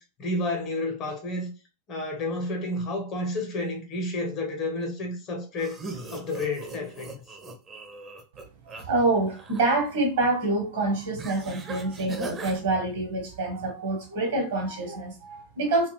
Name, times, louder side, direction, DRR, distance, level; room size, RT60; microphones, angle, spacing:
voice 1, 0.2-1.5 1.9-5.8 6.1-7.1, left 2 dB, 35° left, 0.8 m, -30 dB
sound 1, 5.6-8.8 9.2-9.7 11.2-12.6, right 3 dB, 25° right, 0.7 m, -40 dB
voice 2, 8.6-15.9, right 2 dB, 60° right, 1.1 m, -26 dB
2.4 x 2.2 x 3.2 m
figure-of-eight pair, 90°, 0 cm